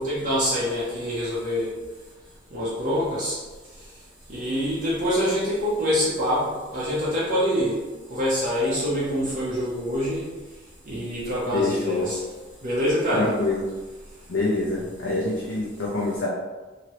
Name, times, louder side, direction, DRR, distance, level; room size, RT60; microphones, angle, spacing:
voice 1, 0.0-1.7 2.5-3.4 4.3-7.8 8.1-10.3 10.9-12.2 12.6-13.3, equal, 45° right, -8 dB, 0.8 m, -25 dB
voice 2, 11.5-12.1 13.1-13.6 14.3-16.3, left 2 dB, 75° left, -5 dB, 0.6 m, -25 dB
3.0 x 2.8 x 2.9 m, 1.2 s
head